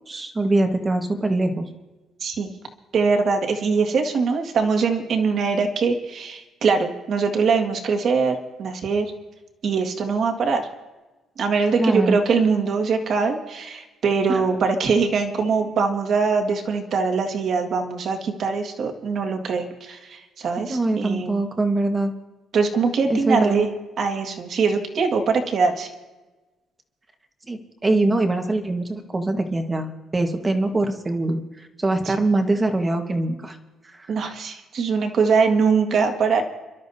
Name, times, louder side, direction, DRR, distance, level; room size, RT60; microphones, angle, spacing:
voice 1, 0.1-1.7 11.8-12.2 14.3-14.4 20.7-22.1 23.1-23.7 27.5-31.4 31.8-33.6 34.0-34.1, right 2 dB, 20° right, 5 dB, 1.4 m, -23 dB
voice 2, 2.9-9.1 9.6-10.7 11.4-21.4 22.5-23.7 24.0-25.9 34.1-36.4, right 5 dB, 50° right, 5 dB, 1.9 m, -22 dB
29.0 x 12.5 x 2.8 m, 1.1 s
cardioid pair, 145°, 0 cm